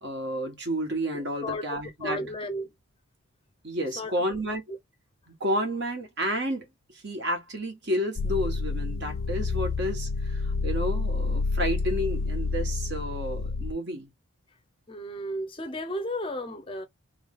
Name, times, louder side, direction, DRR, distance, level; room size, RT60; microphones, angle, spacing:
voice 1, 0.0-2.2 3.6-4.6 5.3-6.6 6.9-14.1, equal, 50° right, 1.4 m, -31 dB
voice 2, 1.4-2.7 4.0-4.1 14.9-16.8, left 1 dB, 25° left, 0.6 m, -33 dB
sound 1, 8.2-13.7, left 3 dB, 65° left, 0.4 m, -29 dB
3.2 x 3.2 x 3.6 m
head